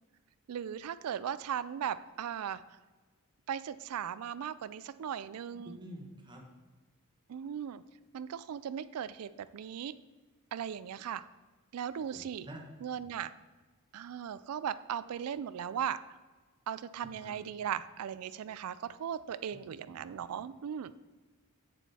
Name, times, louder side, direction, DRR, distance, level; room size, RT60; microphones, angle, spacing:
voice 1, 0.5-2.6 3.5-5.8 7.3-7.8 8.1-9.9 10.5-11.2 11.7-12.5 12.8-13.3 13.9-16.0 16.7-20.9, right 8 dB, 75° right, 15 dB, 0.4 m, -37 dB
voice 2, 5.5-6.4 12.0-12.6 12.9-13.0 17.2-17.3 20.1-20.2, right 1 dB, 20° right, 1 dB, 1.3 m, -48 dB
8.1 x 7.1 x 4.2 m, 1.3 s
head